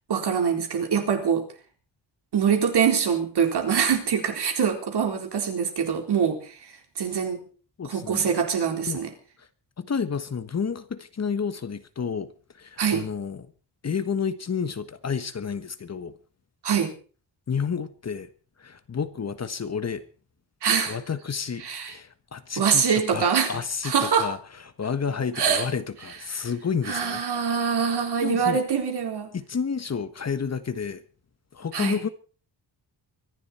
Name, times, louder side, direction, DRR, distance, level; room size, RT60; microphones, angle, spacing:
voice 1, 0.1-1.4 2.3-6.5 7.0-7.4 7.9-9.1 12.8-13.1 16.6-16.9 20.6-21.0 21.6-21.9 22.6-23.6 23.8-24.3 25.4-25.6 26.9-29.3 31.7-32.0, right 7 dB, 70° right, 4.2 m, -24 dB
voice 2, 7.8-8.3 8.9-9.0 9.8-13.5 13.8-16.1 17.5-18.3 18.6-20.0 20.9-24.4 24.8-27.2 28.2-28.6 29.3-31.0 31.5-32.1, left 6 dB, 40° left, 1.4 m, -30 dB
24.0 x 11.0 x 4.4 m
cardioid pair, 110°, 42 cm